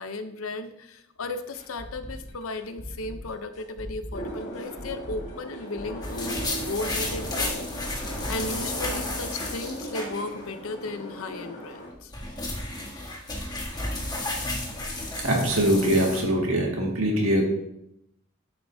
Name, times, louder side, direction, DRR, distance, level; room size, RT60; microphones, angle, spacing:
voice 1, 0.0-12.1 12.8-12.9, left 2 dB, 75° left, 9 dB, 0.7 m, -35 dB
sound 1, 1.5-9.3 9.5-9.6 10.0-10.1, equal, 35° left, 1.5 m, -41 dB
sound 2, 4.1-11.9, right 1 dB, 55° left, 2.5 m, -39 dB
sound 3, 6.0-10.5 10.8-10.9 11.8-16.2, left 2 dB, 20° left, 1.6 m, -32 dB
voice 2, 15.2-17.4, right 1 dB, 75° right, 0 dB, 2.0 m, -23 dB
9.5 x 8.1 x 2.7 m, 0.80 s
head